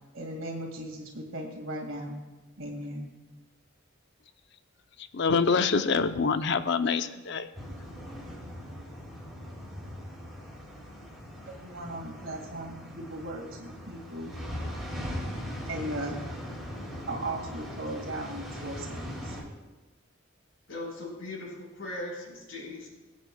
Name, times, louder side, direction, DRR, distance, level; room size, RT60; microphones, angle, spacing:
voice 1, 0.1-2.2 2.6-3.1 11.5-14.4 15.7-16.2 17.1-19.4, right 1 dB, 75° right, 1 dB, 1.9 m, -37 dB
voice 2, 5.0-7.5, left 5 dB, 60° left, 10 dB, 0.5 m, -26 dB
sound 1, 7.5-19.4, equal, ahead, 2.9 m, -40 dB
voice 3, 20.7-22.9, left 2 dB, 75° left, -4 dB, 4.3 m, -39 dB
24.0 x 8.4 x 2.2 m, 1.1 s
head